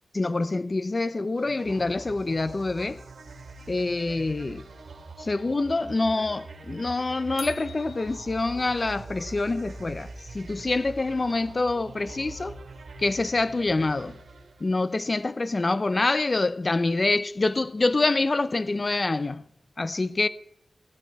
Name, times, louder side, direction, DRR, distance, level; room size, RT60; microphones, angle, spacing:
voice 1, 0.1-3.0 3.7-4.6 5.2-10.1 10.3-12.6 13.0-14.2 14.6-19.4 19.8-20.3, left 3 dB, 30° left, 0.6 m, -26 dB
sound 1, 1.4-15.0, right 3 dB, 75° right, 2.7 m, -43 dB
sound 2, 7.4-9.0, left 4 dB, 70° left, 1.3 m, -44 dB
16.0 x 14.0 x 4.6 m
wide cardioid pair, 125°, 0 cm